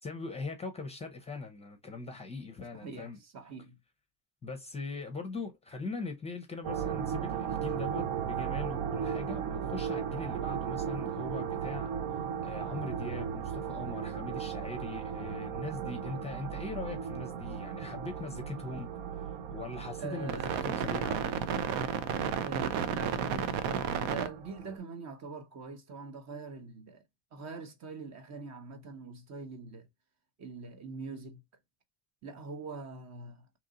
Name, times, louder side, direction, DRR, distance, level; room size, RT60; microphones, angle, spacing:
voice 1, 0.0-3.2 4.4-11.9 12.4-21.5, left 3 dB, 15° left, 0.6 m, -41 dB
voice 2, 2.7-3.8 20.0-20.6 22.4-27.0 27.3-29.9 30.4-31.4 32.2-33.5, right 4 dB, 40° right, 0.9 m, -43 dB
sound 1, 6.6-24.8, right 8 dB, 75° right, 0.7 m, -35 dB
2.9 x 2.6 x 3.8 m
cardioid pair, 125°, 42 cm